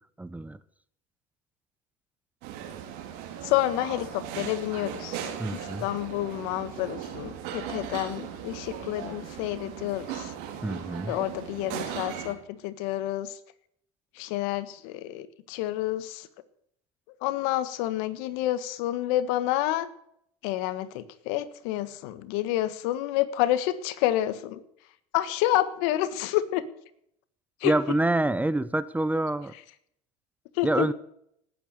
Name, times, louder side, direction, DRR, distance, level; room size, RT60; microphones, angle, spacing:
voice 1, 0.2-0.6 5.4-5.9 10.6-11.2 27.6-29.5 30.6-30.9, right 2 dB, 10° right, 16 dB, 0.8 m, -26 dB
sound 1, 2.4-12.3, right 9 dB, 65° right, 4.3 m, -38 dB
voice 2, 3.4-5.3 5.6-10.3 11.1-13.4 14.2-16.3 17.2-19.9 20.4-24.6 25.1-26.6 27.6-27.7 30.5-30.9, left 14 dB, 70° left, 15 dB, 1.5 m, -29 dB
19.0 x 9.2 x 6.7 m, 0.72 s
supercardioid pair, 100°, 19 cm